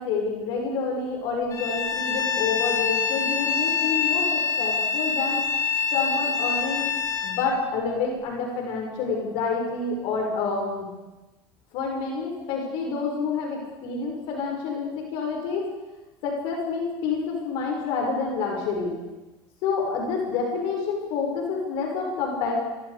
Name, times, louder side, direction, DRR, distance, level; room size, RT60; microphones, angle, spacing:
voice 1, 0.0-5.4 5.9-6.9 7.2-10.9 11.7-15.6 16.2-18.9 19.6-22.5, left 4 dB, 70° left, 0 dB, 5.9 m, -28 dB
Bowed string instrument, 1.5-7.4, left 6 dB, 35° left, 5.2 m, -25 dB
25.5 x 24.5 x 5.1 m, 1.1 s
supercardioid pair, 120°, 10 cm